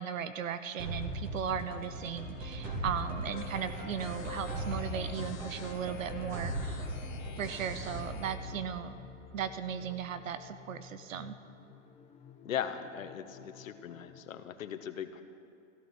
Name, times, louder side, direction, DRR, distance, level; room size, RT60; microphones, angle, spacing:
voice 1, 0.0-6.8 7.4-9.0 9.3-11.3, right 8 dB, 75° right, 11 dB, 0.9 m, -37 dB
sound 1, 0.8-9.6, right 1 dB, 20° right, 2.6 m, -39 dB
sound 2, 3.4-8.4, left 6 dB, 35° left, 2.3 m, -49 dB
sound 3, 7.3-14.2, left 7 dB, 15° left, 0.8 m, -53 dB
voice 2, 12.4-15.2, left 9 dB, 75° left, 8 dB, 1.3 m, -38 dB
15.0 x 13.0 x 5.8 m, 2.6 s
hypercardioid pair, 140°, 40 cm